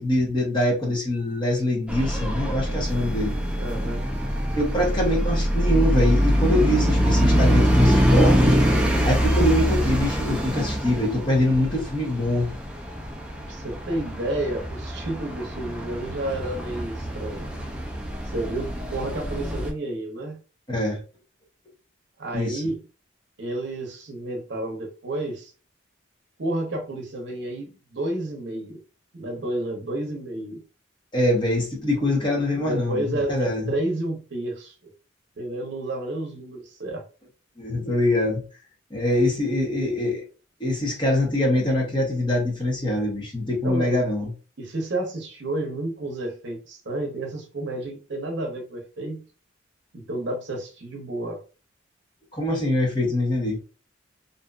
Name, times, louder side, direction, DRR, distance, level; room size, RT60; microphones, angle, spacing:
voice 1, 0.0-3.3 4.6-8.6 9.0-12.5 20.7-21.0 22.3-22.6 31.1-33.0 33.3-33.7 37.6-38.4 38.9-40.2 40.6-44.3 52.3-53.6, left 1 dB, 25° left, 0.8 m, -24 dB
sound 1, 1.9-19.7, equal, 5° right, 0.4 m, -24 dB
voice 2, 3.6-4.1 13.5-17.5 18.2-20.4 22.2-22.8 23.4-25.5 26.4-28.8 29.1-30.6 32.5-34.9 35.4-37.0 43.6-44.0 44.6-49.2 49.9-51.4, right 1 dB, 60° right, 0.7 m, -31 dB
2.6 x 2.4 x 2.2 m
head